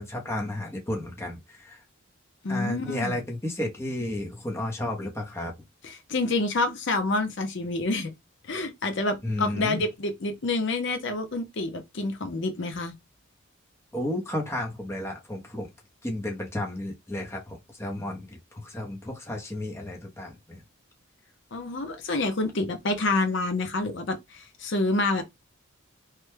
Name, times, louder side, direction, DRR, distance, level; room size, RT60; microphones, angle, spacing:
voice 1, 0.0-1.8 2.5-5.5 9.2-9.8 13.9-15.7 16.0-20.6, left 1 dB, 10° left, 0.7 m, -32 dB
voice 2, 2.4-3.2 5.8-8.2 8.5-12.9 21.5-25.2, left 2 dB, 55° left, 0.6 m, -28 dB
3.1 x 2.2 x 3.2 m
head